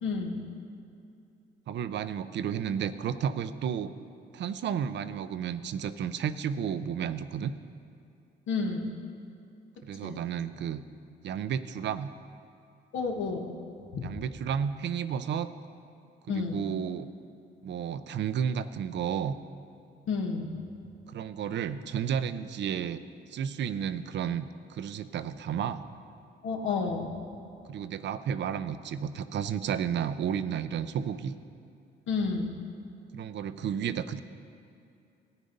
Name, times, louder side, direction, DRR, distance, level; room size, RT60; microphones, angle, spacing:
voice 1, 0.0-0.5 8.5-8.9 10.0-10.2 12.9-13.5 13.9-14.1 16.3-16.6 20.1-20.6 26.4-27.1 32.1-32.5, left 4 dB, 75° left, 2 dB, 1.5 m, -31 dB
voice 2, 1.7-3.9 4.3-7.5 9.8-10.8 11.2-12.1 14.0-15.5 16.3-17.1 17.6-19.3 21.1-23.0 23.3-25.8 27.7-31.4 33.1-34.2, right 8 dB, 65° right, 12 dB, 0.6 m, -32 dB
13.5 x 9.2 x 5.3 m, 2.6 s
cardioid pair, 90°, 20 cm